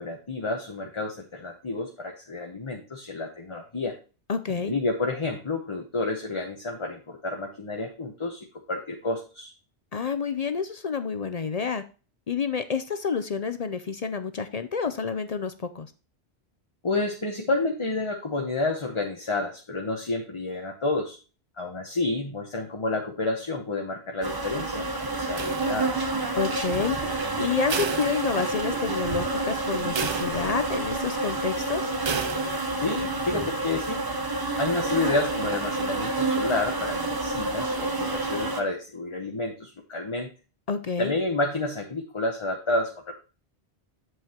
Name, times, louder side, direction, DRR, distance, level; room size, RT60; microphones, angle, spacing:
voice 1, 0.0-4.0 4.5-9.5 16.8-21.2 21.6-25.9 32.8-34.0 34.6-40.3 41.0-43.1, left 2 dB, 30° left, 2 dB, 0.9 m, -30 dB
voice 2, 4.3-4.7 9.9-11.8 12.3-15.9 26.4-27.0 27.4-31.9 40.7-41.1, left 6 dB, 50° left, 10 dB, 0.5 m, -29 dB
sound 1, 24.2-38.6, right 2 dB, 20° right, 0.8 m, -29 dB
sound 2, 25.4-26.2 27.7-28.8 29.2-29.3 30.0-30.8 32.0-32.8, right 6 dB, 45° right, 0.4 m, -33 dB
7.9 x 7.6 x 2.9 m, 0.34 s
omnidirectional pair, 1.1 m